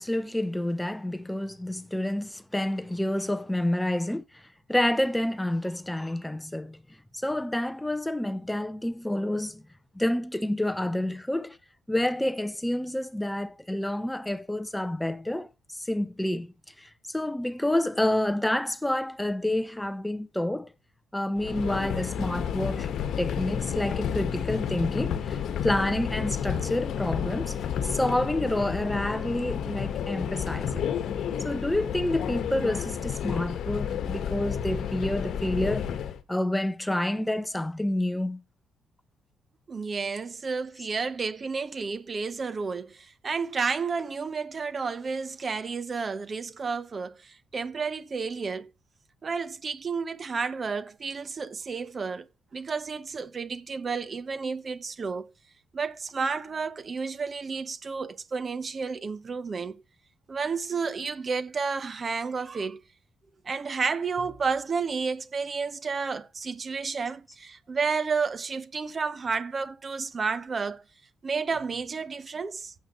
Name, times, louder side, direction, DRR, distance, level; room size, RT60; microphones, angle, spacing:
voice 1, 0.0-4.4 4.7-6.8 7.1-9.6 10.0-11.6 11.9-16.5 16.8-20.7 21.1-22.9 23.2-27.6 27.8-30.9 31.4-35.9 36.3-38.4, left 1 dB, 5° left, 0.6 m, -28 dB
Subway metro underground, 21.4-36.2, left 8 dB, 65° left, 1.3 m, -31 dB
voice 2, 39.7-48.7 49.2-52.3 52.5-55.3 55.7-59.8 60.3-62.8 63.4-70.8 71.2-72.7, right 5 dB, 40° right, 0.9 m, -31 dB
15.0 x 7.8 x 3.0 m
cardioid pair, 90°, 0 cm